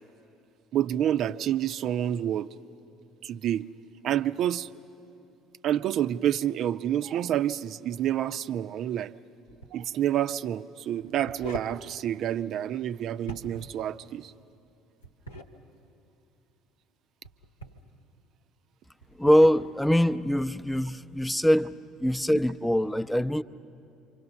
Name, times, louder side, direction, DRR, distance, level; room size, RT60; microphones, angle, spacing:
voice 1, 0.7-2.5 3.2-3.7 4.0-4.7 5.6-9.1 9.7-14.3, right 11 dB, 55° right, 11 dB, 0.5 m, -28 dB
sound 1, 9.5-9.7 11.0-11.8 13.2-13.8 15.0-15.5 17.2-17.9 19.0-19.6, equal, 90° left, 1.5 m, -42 dB
voice 2, 19.2-21.7 22.0-23.4, equal, 5° left, 12 dB, 0.7 m, -23 dB
27.5 x 24.5 x 7.0 m, 2.8 s
figure-of-eight pair, 60°, 0 cm